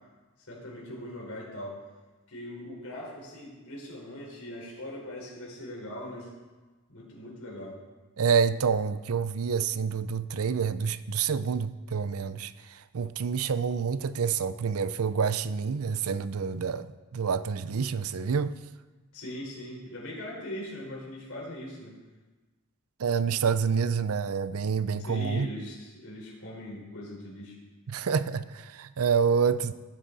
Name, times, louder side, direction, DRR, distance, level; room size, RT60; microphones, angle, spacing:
voice 1, 0.5-1.8 2.3-6.3 6.9-7.8 19.1-22.0 25.0-27.5, left 1 dB, 75° left, 4.7 m, -40 dB
voice 2, 8.2-18.5 23.0-25.5 27.9-29.7, right 6 dB, 75° right, 0.5 m, -28 dB
16.0 x 9.5 x 4.1 m
head